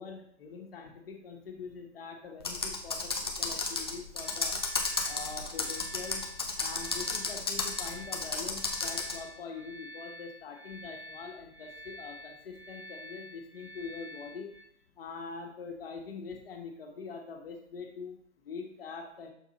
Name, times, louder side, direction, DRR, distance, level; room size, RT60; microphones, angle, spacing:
voice 1, 0.0-4.6 5.0-6.2 6.6-14.5 15.0-18.2 18.4-19.3, left 5 dB, 55° left, 2 dB, 1.5 m, -43 dB
Computer keyboard, 2.4-9.2, left 3 dB, 25° left, 0.4 m, -33 dB
sound 1, 4.2-14.6, equal, 5° right, 1.2 m, -49 dB
6.6 x 3.7 x 4.2 m, 0.67 s
hypercardioid pair, 160°, 36 cm